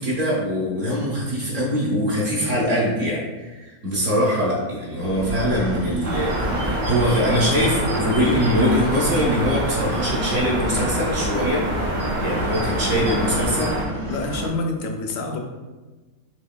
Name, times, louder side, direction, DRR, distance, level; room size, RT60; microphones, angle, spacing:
voice 1, 0.0-11.7 12.2-13.7, equal, 60° right, -6 dB, 1.2 m, -23 dB
sound 1, 5.0-14.5, equal, 45° right, 0.6 m, -31 dB
sound 2, 6.0-13.8, right 1 dB, 80° right, 1.6 m, -26 dB
voice 2, 13.4-13.7 14.0-15.4, left 3 dB, 70° left, 2 dB, 0.9 m, -28 dB
5.7 x 2.8 x 2.2 m, 1.3 s
omnidirectional pair, 1.5 m